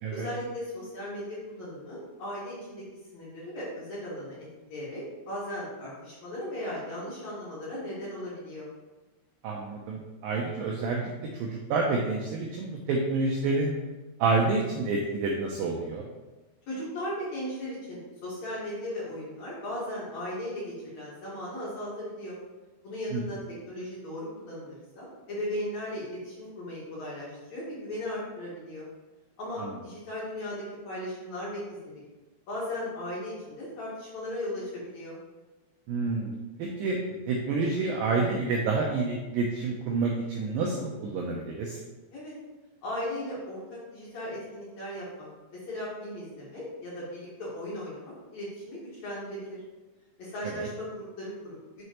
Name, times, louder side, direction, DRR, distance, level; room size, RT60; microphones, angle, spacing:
voice 1, 0.1-2.8 3.1-8.7 16.7-22.4 22.8-23.4 23.7-28.9 29.4-32.0 32.5-35.2 42.1-42.3 42.8-49.6 50.2-51.8, left 1 dB, 50° left, -7 dB, 2.4 m, -37 dB
voice 2, 9.4-11.1 11.4-13.7 14.2-16.1 23.1-23.2 29.6-29.7 35.9-37.0 37.3-41.8 50.5-50.7, right 3 dB, 90° right, 0 dB, 2.0 m, -28 dB
6.8 x 6.2 x 3.0 m, 1.2 s
omnidirectional pair, 4.9 m